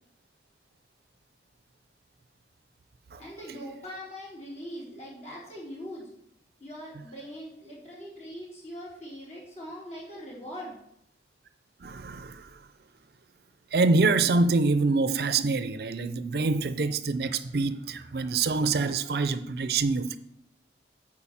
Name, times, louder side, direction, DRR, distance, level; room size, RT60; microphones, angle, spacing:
voice 1, 3.2-6.1 6.6-10.8, equal, 40° left, 3.9 m, -41 dB
voice 2, 11.8-12.6 13.7-20.2, right 3 dB, 60° right, 0.5 m, -25 dB
8.7 x 4.9 x 7.1 m
head